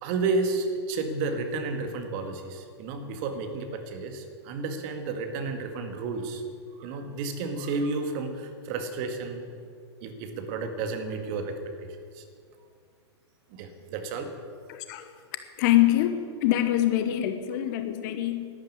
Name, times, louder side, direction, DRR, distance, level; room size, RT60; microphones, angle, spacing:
voice 1, 0.0-6.4 6.8-9.5 10.0-12.2 13.5-14.4, right 3 dB, 40° right, 5 dB, 2.0 m, -32 dB
voice 2, 14.7-15.1 15.6-18.5, left 13 dB, 40° left, 9 dB, 1.1 m, -24 dB
12.0 x 11.5 x 8.4 m, 2.2 s
figure-of-eight pair, 105°, 15 cm